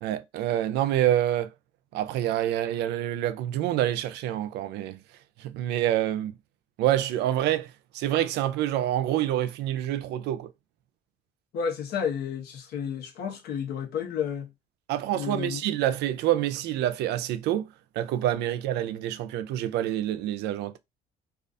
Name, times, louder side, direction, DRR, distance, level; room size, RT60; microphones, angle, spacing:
voice 1, 0.0-1.5 1.9-5.0 5.4-6.3 6.8-10.5 14.9-17.7 18.0-20.8, right 12 dB, 80° right, 0.4 m, -27 dB
voice 2, 11.5-14.5 15.1-15.6, left 7 dB, 70° left, 0.8 m, -31 dB
2.3 x 2.3 x 2.5 m
cardioid pair, 110°, 17 cm